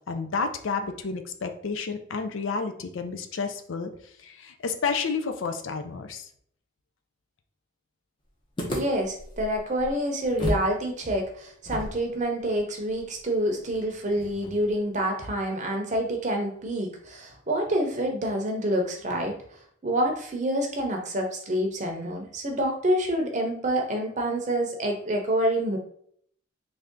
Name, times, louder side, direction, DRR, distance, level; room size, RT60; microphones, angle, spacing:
voice 1, 0.1-3.9 4.2-6.3, left 5 dB, 75° left, 7 dB, 0.5 m, -30 dB
sound 1, 8.6-10.7 11.0-11.1 11.6-14.8, equal, 25° left, 0.6 m, -35 dB
voice 2, 8.7-19.4 19.8-25.8, right 1 dB, 35° right, 2 dB, 0.6 m, -27 dB
3.3 x 2.6 x 3.6 m, 0.63 s
head